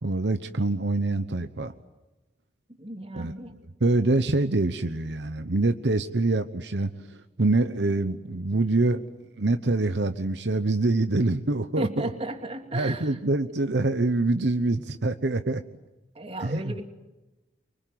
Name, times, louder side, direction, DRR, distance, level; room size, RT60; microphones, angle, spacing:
voice 1, 0.0-1.7 3.1-3.3 3.8-9.1 9.4-12.1 12.7-15.6 16.4-16.7, right 2 dB, 75° right, 9 dB, 1.0 m, -25 dB
voice 2, 2.8-3.6 11.8-13.2 16.1-16.9, right 1 dB, 35° right, 5 dB, 2.8 m, -34 dB
26.0 x 24.5 x 9.4 m, 1.0 s
head